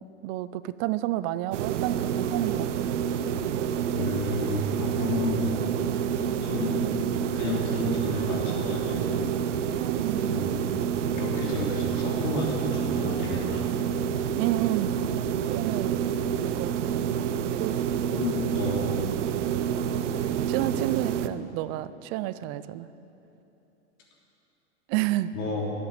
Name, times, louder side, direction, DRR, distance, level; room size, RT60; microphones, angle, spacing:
voice 1, 0.0-2.9 9.8-10.4 14.3-15.0 15.5-16.0 16.4-17.0 17.6-17.8 20.5-22.9 24.9-25.3, right 16 dB, 40° right, 15 dB, 0.4 m, -30 dB
sound 1, 1.5-21.3, right 8 dB, 85° right, 0.7 m, -28 dB
voice 2, 3.9-5.5 6.2-6.9 7.3-9.5 10.3-10.7 11.1-13.7 18.1-18.9 25.3-25.7, left 1 dB, 50° left, -2 dB, 3.3 m, -31 dB
11.0 x 8.6 x 8.1 m, 2.9 s
hypercardioid pair, 115°, 35 cm